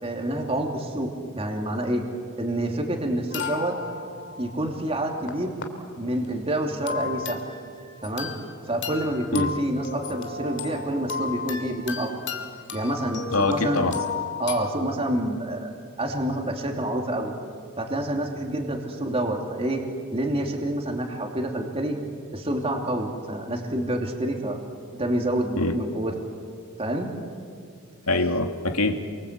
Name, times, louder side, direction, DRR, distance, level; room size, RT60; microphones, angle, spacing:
voice 1, 0.0-2.0 2.4-3.8 4.4-5.5 6.0-7.4 8.0-8.3 8.7-12.1 12.7-13.9 14.4-15.7 16.0-17.3 17.8-19.8 20.1-22.0 22.3-24.6 25.0-26.1 26.8-27.1, right 1 dB, 25° right, 1 dB, 2.9 m, -27 dB
sound 1, 3.3-5.6 6.1-6.3 6.9-8.5 8.8-14.7, left 5 dB, 55° left, 2.7 m, -34 dB
voice 2, 13.3-14.0 25.6-25.8 28.1-29.0, left 2 dB, 80° left, 5 dB, 2.3 m, -24 dB
29.0 x 24.5 x 8.2 m, 2.2 s
head